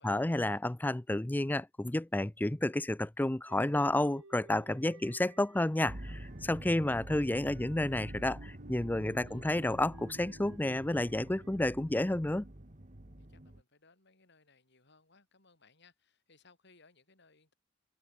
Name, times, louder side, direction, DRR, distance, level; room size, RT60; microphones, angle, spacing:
voice 1, 0.0-12.5, left 1 dB, 10° left, 0.5 m, -31 dB
sound 1, 3.5-12.7, right 2 dB, 85° right, 2.1 m, -57 dB
voice 2, 4.9-5.3 9.2-9.5 13.2-17.5, left 4 dB, 60° left, 6.5 m, -65 dB
sound 2, 5.9-13.6, right 1 dB, 40° right, 2.1 m, -47 dB
head